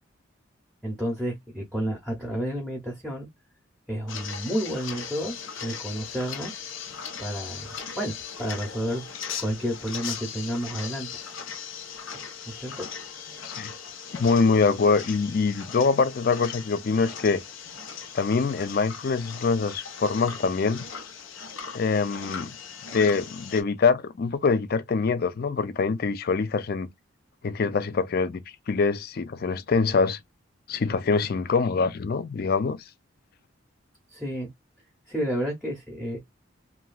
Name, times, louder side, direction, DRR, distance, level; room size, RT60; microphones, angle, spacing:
voice 1, 0.8-3.3 3.9-5.3 5.6-6.5 7.2-9.1 9.4-11.2 12.5-12.9 34.1-34.5 35.1-36.2, equal, ahead, 0.8 m, -31 dB
sound 1, 4.1-23.6, left 7 dB, 80° left, 0.9 m, -39 dB
voice 2, 14.2-17.4 18.1-20.8 21.7-22.5 22.9-26.9 27.4-30.2 30.7-32.8, left 4 dB, 50° left, 0.4 m, -24 dB
3.0 x 2.3 x 2.2 m
head